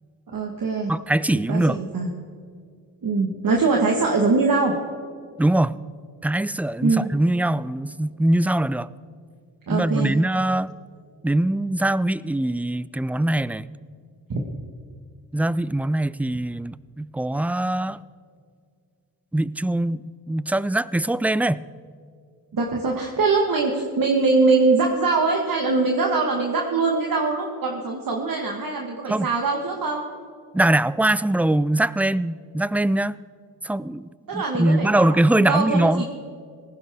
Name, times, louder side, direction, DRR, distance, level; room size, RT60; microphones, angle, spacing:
voice 1, 0.3-0.9 1.5-2.1 3.0-4.7 6.8-7.1 9.7-10.1 14.3-14.4 22.5-30.1 34.3-36.0, right 3 dB, 60° right, 0 dB, 1.7 m, -22 dB
voice 2, 0.9-1.8 5.4-5.8 6.2-8.9 9.7-10.7 11.2-13.7 15.3-18.0 19.3-21.7 29.1-29.3 30.5-33.2 33.6-36.0, right 1 dB, 5° right, 18 dB, 0.4 m, -22 dB
18.5 x 15.5 x 3.7 m, 2.2 s
cardioid pair, 60°, 37 cm